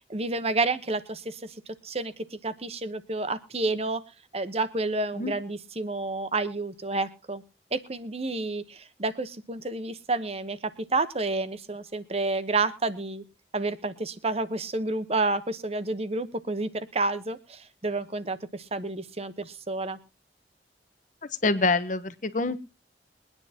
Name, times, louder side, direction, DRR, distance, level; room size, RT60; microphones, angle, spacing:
voice 1, 0.1-1.5 1.8-4.0 4.3-7.4 7.7-13.2 13.5-20.0, right 3 dB, 35° right, 12 dB, 1.0 m, -30 dB
voice 2, 21.2-22.6, left 3 dB, 45° left, 12 dB, 1.1 m, -26 dB
23.0 x 9.9 x 2.9 m, 0.29 s
head